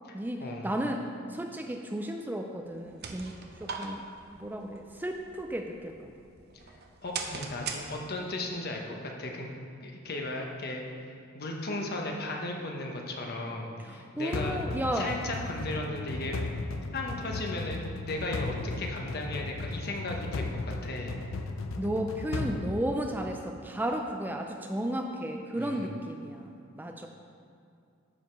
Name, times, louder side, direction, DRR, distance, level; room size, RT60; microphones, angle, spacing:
voice 1, 0.1-4.1 4.3-6.1 13.8-15.5 21.8-27.1, right 1 dB, 10° right, 3 dB, 0.4 m, -34 dB
sound 1, 2.6-8.4, right 4 dB, 55° right, 0.8 m, -42 dB
voice 2, 7.0-9.5 9.8-10.8 11.3-14.6 14.9-16.4 16.9-17.8 18.1-21.2 25.6-25.8, left 2 dB, 50° left, 1 dB, 1.1 m, -36 dB
sound 2, 14.3-23.5, left 3 dB, 75° left, 0.5 m, -36 dB
12.5 x 4.9 x 4.6 m, 2.5 s
head